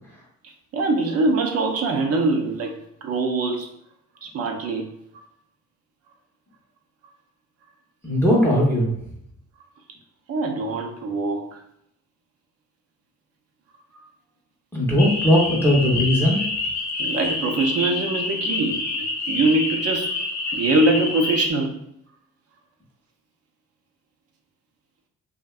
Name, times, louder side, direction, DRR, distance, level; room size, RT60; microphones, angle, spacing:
voice 1, 0.7-2.7 3.0-3.7 4.2-4.9 10.3-11.4 17.0-20.1 20.5-21.7, right 2 dB, 50° right, 3 dB, 0.5 m, -23 dB
voice 2, 8.0-8.9 14.7-16.4, left 1 dB, 10° left, -4 dB, 0.6 m, -18 dB
sound 1, 15.0-21.5, left 3 dB, 65° left, 0.6 m, -27 dB
2.5 x 2.1 x 2.3 m, 0.75 s
cardioid pair, 90°, 30 cm